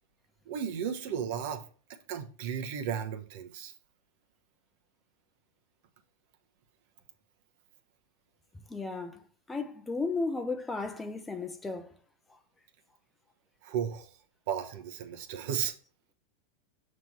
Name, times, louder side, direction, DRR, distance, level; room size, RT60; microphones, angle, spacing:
voice 1, 0.5-1.6 2.1-3.7 13.6-14.1 14.5-15.7, right 8 dB, 60° right, 1.0 m, -34 dB
voice 2, 8.7-12.0 12.3-12.4, left 3 dB, 10° left, 0.6 m, -35 dB
6.1 x 3.2 x 5.4 m
hypercardioid pair, 115°, 0 cm